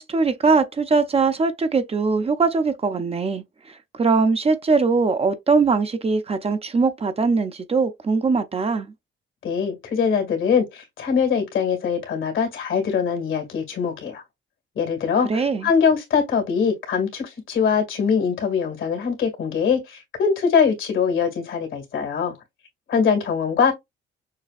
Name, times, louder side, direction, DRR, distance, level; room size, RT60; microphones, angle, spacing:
voice 1, 0.0-8.9 15.3-15.7, right 4 dB, 30° right, 0.6 m, -21 dB
voice 2, 9.4-14.2 14.8-22.3 22.9-23.7, left 6 dB, 75° left, 2.1 m, -22 dB
6.5 x 2.2 x 2.5 m
cardioid pair, 90°, 20 cm